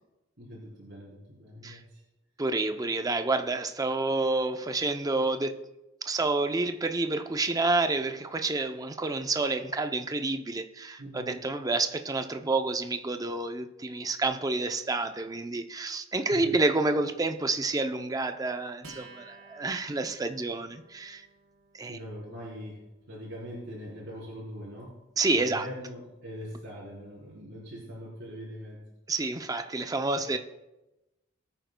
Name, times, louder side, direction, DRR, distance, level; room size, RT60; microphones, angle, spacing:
voice 1, 0.4-2.0 11.0-11.3 16.1-16.5 21.8-24.9 25.3-28.9 30.1-30.2, equal, 60° right, -7 dB, 3.8 m, -42 dB
voice 2, 2.4-5.6 6.0-21.3 21.7-22.0 25.2-25.7 29.1-30.4, right 3 dB, 20° right, 8 dB, 0.5 m, -29 dB
Acoustic guitar, 18.8-25.7, right 3 dB, 85° right, 3.6 m, -55 dB
21.0 x 9.2 x 2.2 m, 1.0 s
head